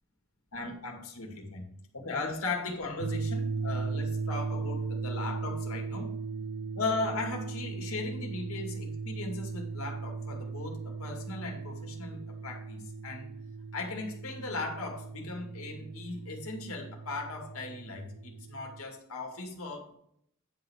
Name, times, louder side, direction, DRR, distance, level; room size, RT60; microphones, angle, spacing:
voice 1, 0.5-6.2 6.8-13.3 13.7-19.9, left 3 dB, 70° left, 2 dB, 2.2 m, -38 dB
sound 1, 3.0-18.8, right 4 dB, 80° right, 0.5 m, -37 dB
9.8 x 4.0 x 7.2 m, 0.70 s
head